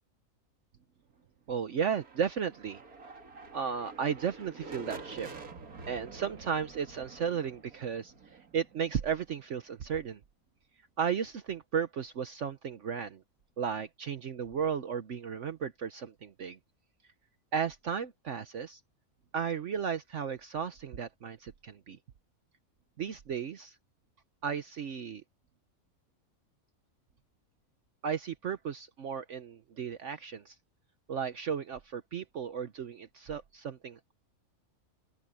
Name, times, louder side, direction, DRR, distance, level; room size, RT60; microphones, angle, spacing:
voice 1, 1.5-2.8 3.5-5.3 5.9-10.2 11.0-13.2 13.6-16.6 17.5-18.8 19.3-22.0 23.0-23.8 24.4-25.2 28.0-30.6 31.1-34.1, right 7 dB, 60° right, 1.2 m, -34 dB
sound 1, 1.7-9.5, right 3 dB, 80° right, 2.6 m, -48 dB
open air
omnidirectional pair, 1.5 m